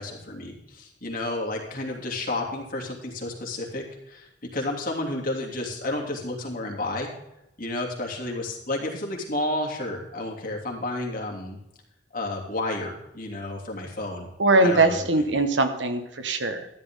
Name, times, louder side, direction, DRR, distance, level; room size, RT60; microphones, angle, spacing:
voice 1, 0.0-7.1 7.6-11.6 12.1-14.3 14.6-15.0, left 2 dB, 50° left, -1 dB, 3.0 m, -31 dB
voice 2, 14.4-16.7, right 2 dB, 90° right, 8 dB, 1.5 m, -21 dB
14.0 x 11.0 x 3.8 m, 0.86 s
head